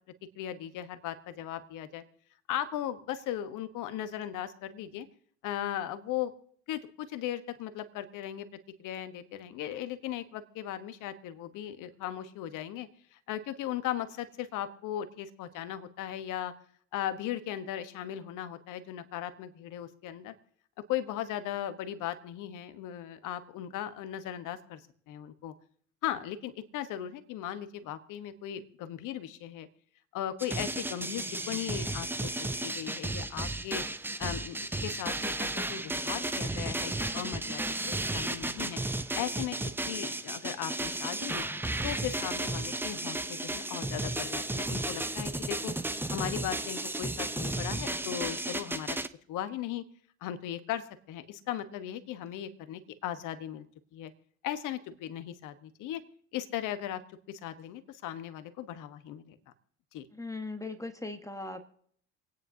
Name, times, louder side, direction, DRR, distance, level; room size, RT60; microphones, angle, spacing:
voice 1, 0.3-2.0 2.5-5.1 5.4-6.3 6.7-8.5 8.8-16.5 16.9-20.3 20.9-24.8 25.1-25.5 26.0-29.7 30.1-33.8 34.2-34.6 34.8-38.8 39.1-39.6 39.9-41.5 41.8-45.7 46.1-49.0 49.3-49.8 50.2-53.7 53.9-54.1 54.4-56.0 56.3-57.0 57.3-59.4 59.9-60.1, left 11 dB, 60° left, 10 dB, 1.2 m, -37 dB
sound 1, 30.4-49.1, right 2 dB, 5° right, 0.6 m, -34 dB
voice 2, 60.2-61.6, left 2 dB, 10° left, 7 dB, 1.4 m, -38 dB
27.5 x 9.5 x 2.8 m, 0.62 s
hypercardioid pair, 60°, 35 cm